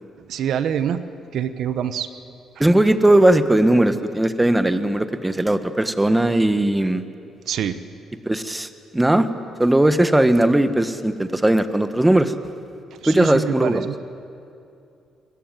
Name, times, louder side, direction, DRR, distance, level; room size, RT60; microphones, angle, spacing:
voice 1, 0.3-1.0 1.3-2.1 7.5-7.8 13.0-13.9, right 9 dB, 70° right, 12 dB, 1.2 m, -25 dB
voice 2, 2.6-7.0 8.2-9.3 9.6-12.3 13.1-13.9, right 1 dB, 10° right, 10 dB, 1.5 m, -18 dB
27.0 x 22.5 x 9.2 m, 2.6 s
cardioid pair, 90°, 0 cm